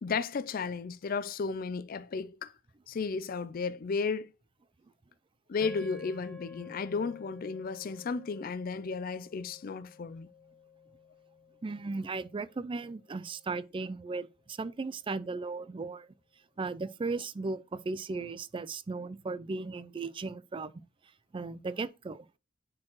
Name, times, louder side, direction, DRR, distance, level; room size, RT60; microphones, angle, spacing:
voice 1, 0.0-2.5 2.9-4.3 5.5-10.3, left 5 dB, 45° left, 0.4 m, -34 dB
sound 1, 5.6-14.0, left 5 dB, 5° left, 0.9 m, -52 dB
voice 2, 11.6-16.1 16.6-20.7 21.3-22.3, right 3 dB, 25° right, 0.4 m, -36 dB
9.6 x 4.4 x 3.0 m
head